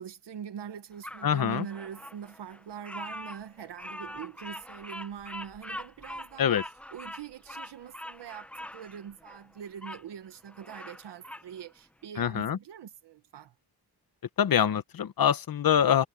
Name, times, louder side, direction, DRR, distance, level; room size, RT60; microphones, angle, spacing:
voice 1, 0.0-6.6 6.9-13.5, right 8 dB, 80° right, 1.3 m, -43 dB
Bird vocalization bird call bird song, 1.0-10.0 10.5-11.5, left 1 dB, 5° left, 0.7 m, -43 dB
voice 2, 1.2-1.7 6.4-6.6 12.2-12.6 14.4-16.0, left 9 dB, 55° left, 1.1 m, -24 dB
wide cardioid pair, 155°, 41 cm